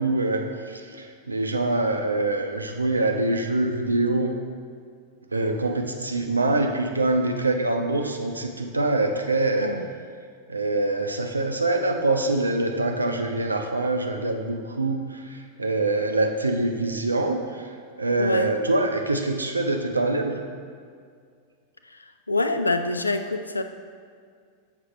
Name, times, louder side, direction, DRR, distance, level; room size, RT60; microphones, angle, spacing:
voice 1, 0.0-4.4 5.3-9.7 10.5-17.7 18.0-20.3, right 2 dB, 80° right, 4 dB, 0.5 m, -24 dB
voice 2, 18.2-18.5 22.3-23.6, left 2 dB, 80° left, 8 dB, 0.3 m, -25 dB
6.1 x 4.3 x 4.1 m, 2.1 s
figure-of-eight pair, 90°, 0 cm